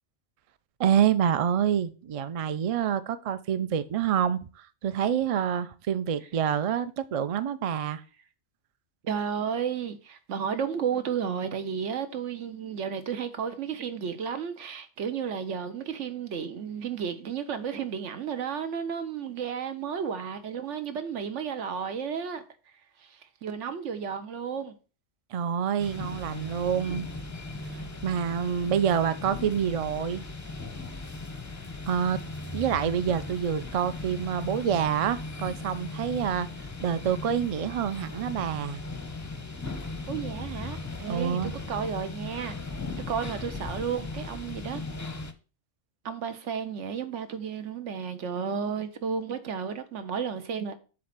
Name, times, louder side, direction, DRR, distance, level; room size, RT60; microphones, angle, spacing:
voice 1, 0.8-8.0 25.3-27.1 27.7-30.2 31.9-32.2 32.5-36.5 36.8-38.8 41.1-41.5, right 8 dB, 60° right, 0.3 m, -27 dB
voice 2, 9.0-22.4 23.0-24.8 40.1-42.6 43.1-44.8 46.0-50.7, right 7 dB, 90° right, 1.2 m, -33 dB
sound 1, 25.8-45.3, left 3 dB, 20° left, 0.5 m, -38 dB
7.7 x 3.2 x 5.9 m
omnidirectional pair, 1.2 m